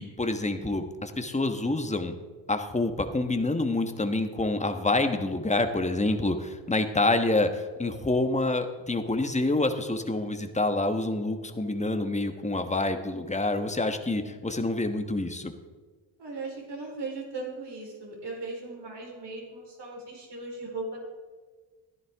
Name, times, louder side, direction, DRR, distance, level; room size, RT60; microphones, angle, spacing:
voice 1, 0.0-2.1 2.5-15.5, left 2 dB, 15° left, 7 dB, 1.3 m, -27 dB
voice 2, 16.2-21.0, right 3 dB, 65° right, -2 dB, 4.4 m, -38 dB
14.5 x 10.5 x 3.6 m, 1.4 s
cardioid pair, 60°, 45 cm